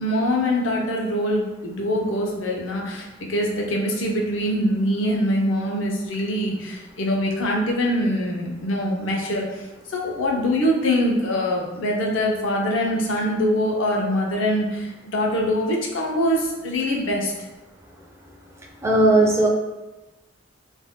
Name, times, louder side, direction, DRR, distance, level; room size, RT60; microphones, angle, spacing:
voice 1, 0.0-9.4 9.9-17.3, equal, 80° left, -1 dB, 0.6 m, -23 dB
voice 2, 18.8-19.5, right 2 dB, 15° right, 0 dB, 0.3 m, -16 dB
2.6 x 2.2 x 3.5 m, 1.1 s
head